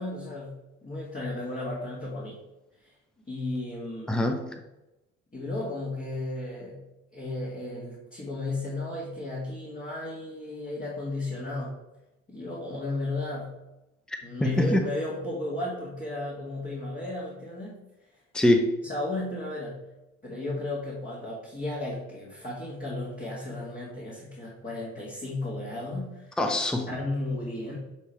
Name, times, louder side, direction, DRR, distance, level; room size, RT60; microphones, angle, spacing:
voice 1, 0.0-2.4 2.8-2.9 3.3-4.2 5.3-6.9 7.1-11.8 12.3-13.6 14.2-17.8 18.8-19.9 20.2-26.4 26.9-27.8, left 2 dB, 25° left, -5 dB, 2.1 m, -34 dB
voice 2, 4.1-4.6 14.1-14.8 18.3-18.7 26.4-26.9, left 1 dB, ahead, 5 dB, 0.8 m, -24 dB
8.2 x 3.3 x 4.5 m, 0.97 s
hypercardioid pair, 60°, 37 cm